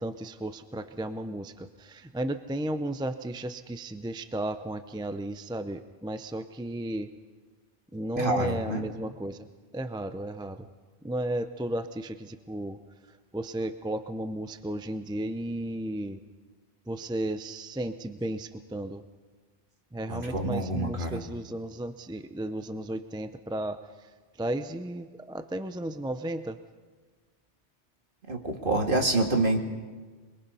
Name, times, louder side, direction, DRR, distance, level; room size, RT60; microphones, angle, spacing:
voice 1, 0.0-7.1 7.9-9.5 9.7-10.7 11.0-12.8 13.3-16.2 16.9-19.0 19.9-24.1 24.4-26.6, right 1 dB, 5° right, 10 dB, 0.4 m, -34 dB
voice 2, 8.2-8.8 20.1-21.2 28.3-29.6, right 2 dB, 45° right, 3 dB, 2.2 m, -27 dB
26.0 x 21.5 x 5.6 m, 1.4 s
omnidirectional pair, 1.2 m